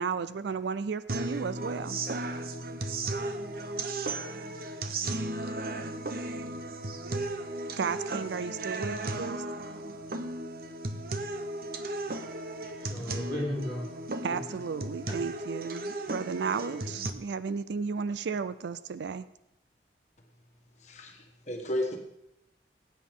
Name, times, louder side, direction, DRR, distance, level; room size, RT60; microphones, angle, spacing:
voice 1, 0.0-2.0 7.8-9.4 14.2-19.3, right 5 dB, 80° right, 14 dB, 0.4 m, -33 dB
sound 1, 1.1-17.1, right 2 dB, 55° right, 0.8 m, -35 dB
voice 2, 12.3-14.0 14.3-14.6 15.1-15.2, left 1 dB, 20° right, -4 dB, 3.8 m, -36 dB
voice 3, 20.8-22.0, left 1 dB, 40° left, 2 dB, 1.5 m, -33 dB
18.0 x 9.0 x 3.7 m, 0.81 s
head